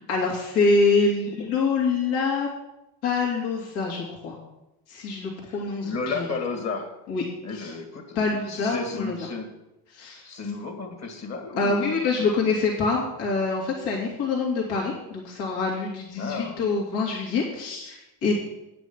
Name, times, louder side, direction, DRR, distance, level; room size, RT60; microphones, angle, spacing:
voice 1, 0.0-2.5 3.0-4.3 4.9-6.2 7.1-7.2 7.5-7.7 8.1-9.1 9.9-10.2 11.6-18.3, left 4 dB, 75° left, -3 dB, 2.7 m, -25 dB
voice 2, 5.5-7.0 7.4-9.5 10.2-12.2 16.2-16.6, left 4 dB, 40° left, 5 dB, 2.3 m, -33 dB
9.7 x 6.0 x 7.3 m, 0.91 s
cardioid pair, 120°, 41 cm